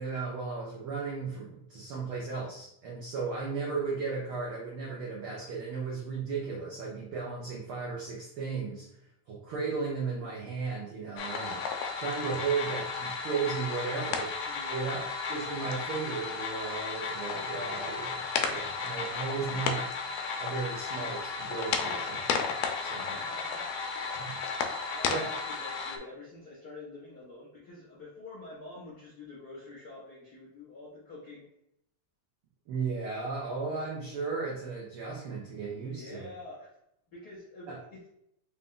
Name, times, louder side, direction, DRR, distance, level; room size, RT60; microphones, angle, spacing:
voice 1, 0.0-8.9 9.3-14.4 14.7-15.0 15.3-19.9 20.4-23.2 24.1-24.4 25.1-25.3 32.7-36.3 37.7-37.8, right 4 dB, 90° right, -3 dB, 1.1 m, -35 dB
sound 1, 11.2-26.0, left 5 dB, 85° left, 2.0 m, -34 dB
voice 2, 14.4-15.1 19.5-19.8 23.0-23.7 23.9-24.2 24.9-31.4 35.7-36.7 37.1-38.1, left 2 dB, 55° left, -9 dB, 1.1 m, -47 dB
5.2 x 2.3 x 3.7 m, 0.78 s
omnidirectional pair, 3.4 m